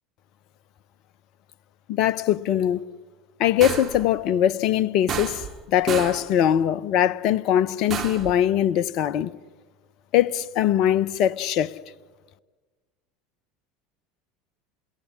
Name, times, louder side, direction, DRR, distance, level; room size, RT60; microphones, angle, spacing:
voice 1, 1.9-2.8 3.4-9.3 10.1-11.7, left 11 dB, 50° left, 0.8 m, -22 dB
sound 1, 3.6-4.1 5.1-5.6 5.9-6.3 7.9-8.3, right 8 dB, 35° right, 2.3 m, -30 dB
29.5 x 17.0 x 9.8 m
figure-of-eight pair, 70°, 0 cm